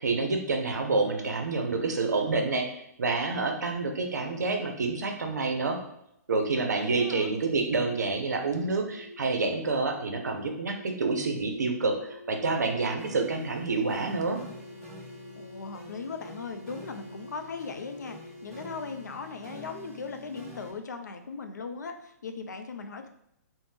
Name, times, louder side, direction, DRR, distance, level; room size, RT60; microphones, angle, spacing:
voice 1, 0.0-2.7 3.0-5.8 6.3-14.4, right 3 dB, 75° right, 4 dB, 0.5 m, -28 dB
voice 2, 6.8-7.3 15.4-23.1, left 4 dB, 80° left, 6 dB, 0.4 m, -38 dB
sound 1, 8.8-18.7, left 2 dB, 40° left, 1.1 m, -47 dB
sound 2, 13.0-20.7, equal, 5° left, 0.9 m, -48 dB
2.6 x 2.0 x 3.3 m, 0.79 s
hypercardioid pair, 130°, 9 cm